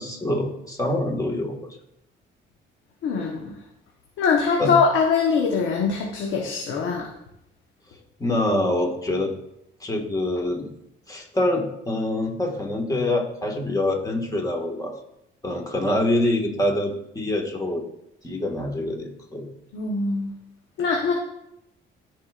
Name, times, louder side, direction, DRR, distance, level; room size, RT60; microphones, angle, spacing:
voice 1, 0.0-1.7 4.6-4.7 8.2-9.3 9.8-10.7 11.1-15.0 15.4-17.8 18.2-19.5, left 1 dB, 20° left, 1 dB, 1.7 m, -25 dB
voice 2, 3.0-3.5 4.2-7.1 19.7-20.3 20.8-21.1, left 5 dB, 90° left, 0 dB, 1.1 m, -22 dB
13.5 x 4.8 x 2.5 m, 0.83 s
cardioid pair, 90°, 20 cm